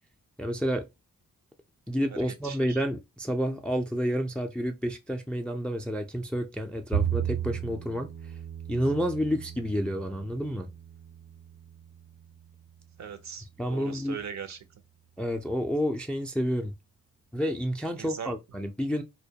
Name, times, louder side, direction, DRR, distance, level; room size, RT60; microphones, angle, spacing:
voice 1, 0.4-0.9 1.9-8.1 8.7-10.7 13.6-14.2 15.2-16.7 17.3-19.0, equal, 5° left, 0.3 m, -29 dB
voice 2, 2.4-2.8 13.0-14.6 18.0-18.3, right 7 dB, 55° right, 0.5 m, -39 dB
Bowed string instrument, 6.9-13.2, right 10 dB, 80° right, 1.1 m, -36 dB
2.2 x 2.2 x 2.7 m
cardioid pair, 50°, 35 cm